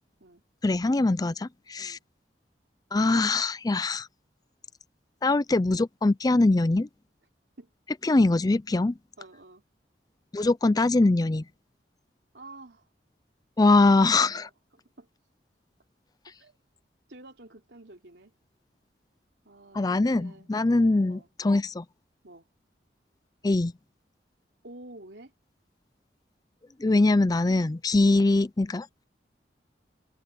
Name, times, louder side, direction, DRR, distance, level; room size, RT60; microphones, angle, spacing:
voice 1, 0.6-2.0 2.9-4.1 5.2-6.9 8.0-8.9 10.3-11.4 13.6-14.5 19.7-21.8 23.4-23.7 26.8-28.9, left 2 dB, 20° left, 0.4 m, -22 dB
voice 2, 9.2-9.6 12.3-12.9 13.6-15.1 16.4-16.6 17.1-18.3 19.4-21.3 22.2-22.5 24.6-25.3 28.1-28.3, right 2 dB, 75° right, 3.4 m, -50 dB
head